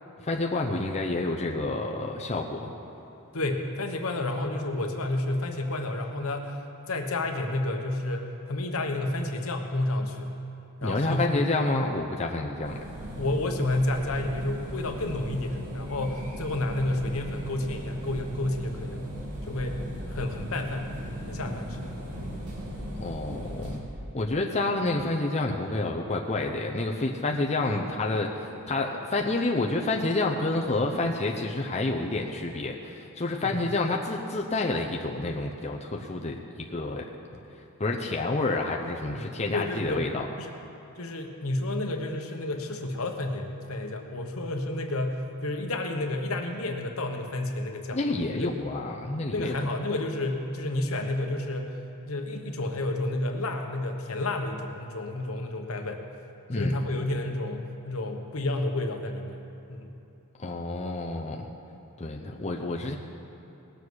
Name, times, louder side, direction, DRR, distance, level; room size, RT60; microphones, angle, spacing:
voice 1, 0.2-2.7 10.8-12.8 23.0-23.8 24.1-37.1 37.8-40.2 47.9-49.6 56.5-56.8 60.4-61.5 62.0-63.0, left 2 dB, 30° left, 0 dB, 0.7 m, -29 dB
voice 2, 3.3-6.6 6.9-10.3 10.8-11.3 13.2-19.0 19.5-19.8 20.1-20.9 21.3-22.2 33.4-33.6 39.1-40.1 40.4-40.5 41.0-48.0 48.3-48.6 49.3-51.8 52.1-56.0 56.5-59.4 59.7-59.9, left 2 dB, 70° left, 4 dB, 1.2 m, -30 dB
sound 1, 12.6-23.8, equal, 90° right, 2.5 m, -38 dB
19.0 x 7.3 x 6.4 m, 3.0 s
head